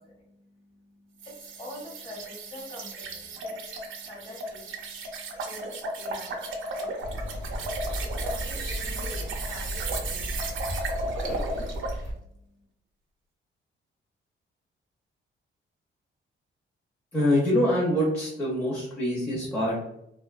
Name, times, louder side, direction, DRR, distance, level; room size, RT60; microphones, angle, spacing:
voice 1, 0.0-11.7 12.0-12.6, left 1 dB, 30° left, -3 dB, 0.8 m, -45 dB
sound 1, 1.2-12.0, right 2 dB, 70° right, 0.5 m, -35 dB
sound 2, 7.0-12.1, equal, 75° left, 0.8 m, -34 dB
voice 2, 17.1-19.8, left 1 dB, 5° left, -7 dB, 0.5 m, -25 dB
2.4 x 2.2 x 2.3 m, 0.78 s
wide cardioid pair, 175°, 21 cm